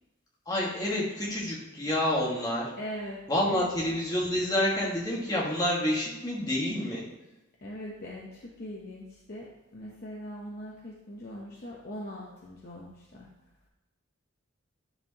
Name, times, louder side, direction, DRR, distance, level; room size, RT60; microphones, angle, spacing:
voice 1, 0.5-2.7 3.3-7.0, left 1 dB, 20° left, -5 dB, 1.5 m, -28 dB
voice 2, 2.8-3.7 7.6-13.3, equal, 45° left, -3 dB, 0.8 m, -41 dB
10.0 x 4.5 x 2.8 m, 1.0 s
head